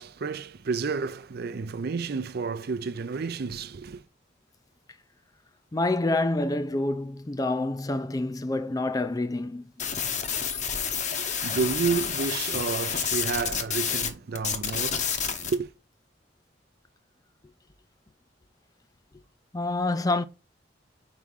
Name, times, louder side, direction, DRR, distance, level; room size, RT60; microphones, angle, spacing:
voice 1, 0.0-4.0 11.1-15.7, right 5 dB, 55° right, 0.5 m, -31 dB
voice 2, 5.7-9.7 19.5-20.2, left 2 dB, 20° left, 0.4 m, -27 dB
sound 1, 9.8-14.1 14.4-15.5, left 7 dB, 40° left, 0.9 m, -29 dB
4.9 x 4.7 x 5.5 m
head